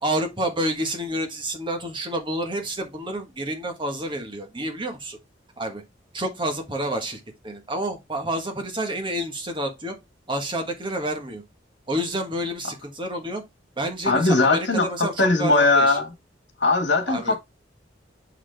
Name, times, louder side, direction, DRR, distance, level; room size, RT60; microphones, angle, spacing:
voice 1, 0.0-5.2 5.6-5.8 6.1-9.9 10.3-11.4 11.9-13.4 13.8-16.0 17.1-17.4, right 1 dB, 25° right, 1.4 m, -29 dB
voice 2, 14.0-16.1 16.6-17.4, left 3 dB, 70° left, 1.6 m, -20 dB
7.2 x 4.1 x 3.4 m
head